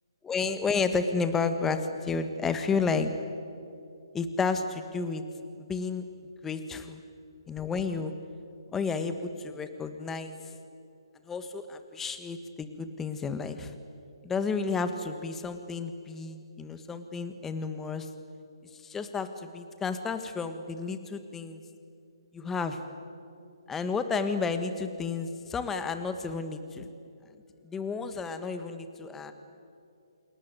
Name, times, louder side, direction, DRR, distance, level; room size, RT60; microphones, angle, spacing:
voice 1, 0.2-3.1 4.1-5.2 5.6-6.0 6.4-7.0 7.5-8.1 8.7-10.4 11.2-13.7 14.2-18.1 18.7-21.6 22.3-22.8 23.7-26.9 27.6-29.3, left 4 dB, 10° left, 9 dB, 1.5 m, -31 dB
28.5 x 20.5 x 9.6 m, 2.5 s
hypercardioid pair, 145°, 3 cm